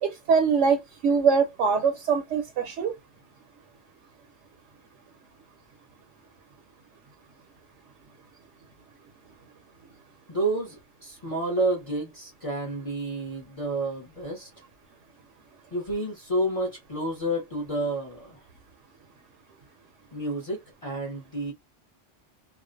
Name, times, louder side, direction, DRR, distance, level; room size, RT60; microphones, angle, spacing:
voice 1, 0.0-2.9, right 5 dB, 80° right, 0.9 m, -23 dB
voice 2, 10.3-14.5 15.7-18.4 20.1-21.5, right 1 dB, 35° left, 0.7 m, -30 dB
2.4 x 2.1 x 2.4 m
omnidirectional pair, 1.3 m